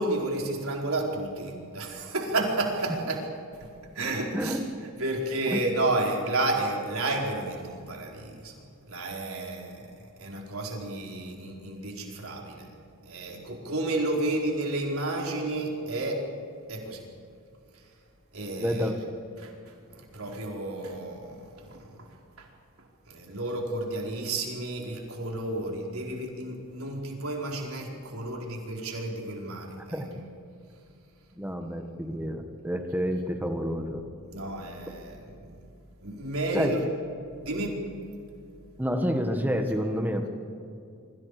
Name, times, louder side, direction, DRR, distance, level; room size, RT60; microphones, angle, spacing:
voice 1, 0.0-3.3 3.9-4.6 5.0-8.5 8.9-12.7 13.0-16.2 16.7-17.1 18.3-18.9 19.4-19.5 19.9-22.1 22.4-22.5 23.1-30.3 34.3-35.5 36.0-36.8 37.4-37.8, right 2 dB, 70° right, 0 dB, 4.7 m, -31 dB
voice 2, 18.6-19.0 29.9-30.1 31.4-34.0 36.5-36.7 38.8-40.3, equal, 10° right, 4 dB, 1.7 m, -29 dB
27.0 x 25.0 x 5.0 m, 2.6 s
head